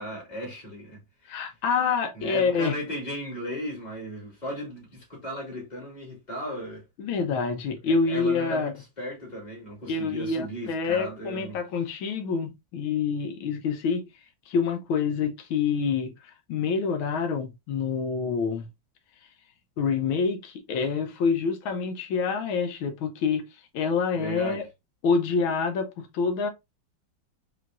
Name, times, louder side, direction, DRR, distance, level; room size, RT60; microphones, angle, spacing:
voice 1, 0.0-1.5 2.2-6.8 8.0-11.6 24.1-24.6, equal, 20° left, 2.4 m, -36 dB
voice 2, 1.3-2.7 7.0-8.7 9.9-14.0 14.5-18.7 19.8-23.4 23.7-24.7 25.0-26.5, left 5 dB, 85° left, 1.6 m, -27 dB
4.9 x 3.4 x 2.5 m
omnidirectional pair, 2.2 m